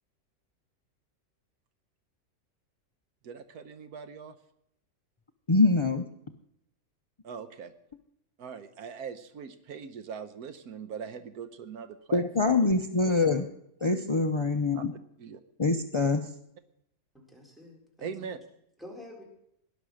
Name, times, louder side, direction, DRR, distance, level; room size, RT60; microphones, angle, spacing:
voice 1, 3.2-4.4 7.2-7.7 8.4-12.6 14.7-14.8 15.2-15.4 18.0-18.4, right 6 dB, 80° right, 11 dB, 1.4 m, -41 dB
voice 2, 5.5-6.1 12.1-13.4 13.8-14.9 15.6-16.2, left 3 dB, 45° left, 6 dB, 0.3 m, -24 dB
voice 3, 17.1-18.3 18.8-19.2, left 1 dB, ahead, -1 dB, 4.1 m, -48 dB
18.0 x 11.5 x 6.4 m, 0.76 s
omnidirectional pair, 1.6 m